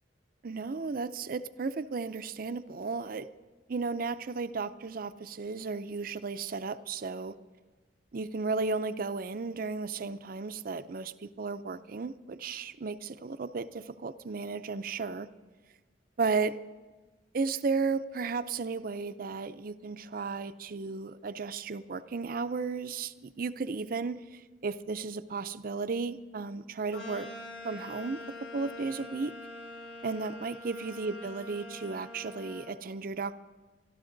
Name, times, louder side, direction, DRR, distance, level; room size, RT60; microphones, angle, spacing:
voice 1, 0.4-3.3 3.7-7.4 8.1-15.3 16.2-16.5 17.3-27.3 27.6-28.2 28.5-29.3 30.0-33.3, right 4 dB, 50° right, 12 dB, 0.5 m, -34 dB
sound 1, 26.9-32.7, left 2 dB, 75° left, 5.2 m, -44 dB
24.0 x 12.5 x 3.9 m, 1.3 s
head